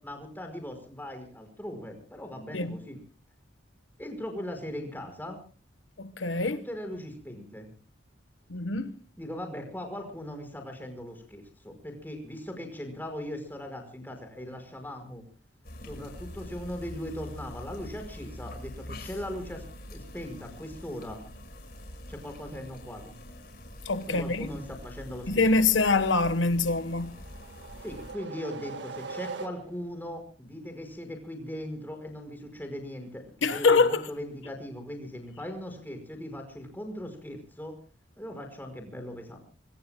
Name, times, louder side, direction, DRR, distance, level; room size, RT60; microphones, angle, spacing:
voice 1, 0.0-3.0 4.0-5.4 6.5-7.7 9.2-15.3 15.9-19.6 19.9-21.2 22.1-23.2 24.1-25.4 27.8-37.8 38.2-39.4, left 1 dB, 10° left, 5.2 m, -39 dB
voice 2, 6.0-6.6 8.5-8.9 23.8-24.5 25.3-27.2 33.4-34.1, left 3 dB, 85° left, 1.2 m, -24 dB
sound 1, 15.6-28.1, left 1 dB, 50° left, 5.5 m, -45 dB
sound 2, 26.9-30.0, right 4 dB, 70° right, 1.7 m, -41 dB
26.0 x 25.0 x 2.2 m
head